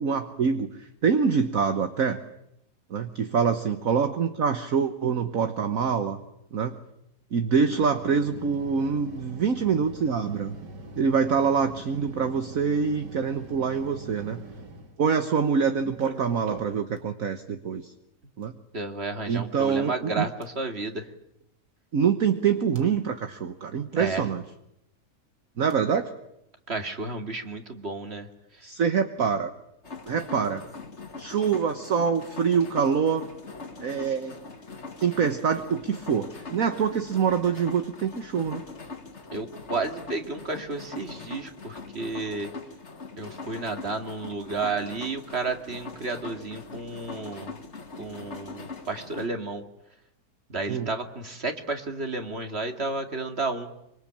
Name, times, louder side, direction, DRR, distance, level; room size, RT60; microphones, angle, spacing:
voice 1, 0.0-2.2 2.9-6.2 6.5-6.8 7.3-10.5 11.0-14.4 15.0-17.9 18.4-18.5 19.3-20.3 21.9-24.4 25.6-26.1 28.6-29.5 30.1-30.6 31.2-33.3 33.8-34.3 35.0-38.6 50.7-50.9, right 6 dB, 55° right, 8 dB, 1.6 m, -25 dB
sound 1, 7.9-15.0 15.7-17.0 18.4-18.5 20.4-20.5 22.4-22.8 25.7-25.8, right 3 dB, 75° right, 2.9 m, -43 dB
voice 2, 18.7-21.1 24.0-24.2 26.7-28.3 39.3-42.5 43.2-47.6 48.0-49.6 50.5-53.7, right 3 dB, 35° right, 6 dB, 2.4 m, -32 dB
sound 2, 29.8-49.3, left 4 dB, 40° left, 2.3 m, -42 dB
25.0 x 24.5 x 8.8 m, 0.80 s
omnidirectional pair, 1.9 m